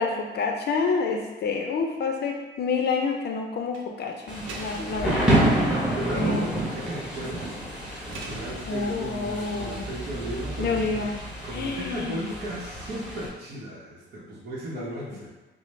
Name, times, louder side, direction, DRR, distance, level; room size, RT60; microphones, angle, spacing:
voice 1, 0.0-5.3 6.1-6.4 8.7-9.9 10.6-11.2 11.5-12.3 14.7-14.9, left 4 dB, 55° left, 2 dB, 0.5 m, -28 dB
sound 1, 3.6-3.9 4.5-5.2 6.5-7.0 7.3-7.4 8.1-8.6 9.1-9.8 11.4-11.9, right 3 dB, 90° right, 0.6 m, -43 dB
Thunder / Rain, 4.3-13.3, right 1 dB, 5° right, 1.1 m, -29 dB
voice 2, 5.9-7.7 8.0-11.1 11.4-15.3, right 1 dB, 55° right, -7 dB, 0.9 m, -35 dB
4.8 x 2.0 x 3.1 m, 1.2 s
cardioid pair, 90°, 20 cm